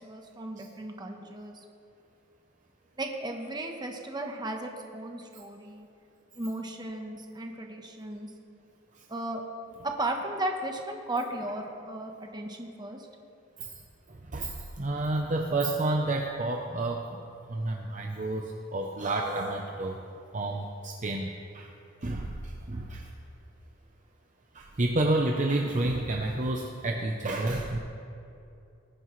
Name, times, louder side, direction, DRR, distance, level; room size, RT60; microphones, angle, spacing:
voice 1, 0.0-1.6 3.0-5.9 6.3-8.3 9.1-9.4 9.8-13.1 15.5-15.6, right 1 dB, 20° right, 2 dB, 1.1 m, -35 dB
voice 2, 14.1-17.2 17.5-20.0 20.3-21.7 22.0-23.1 24.5-27.8, right 2 dB, 40° right, 1 dB, 0.7 m, -30 dB
20.0 x 9.7 x 3.2 m, 2.6 s
head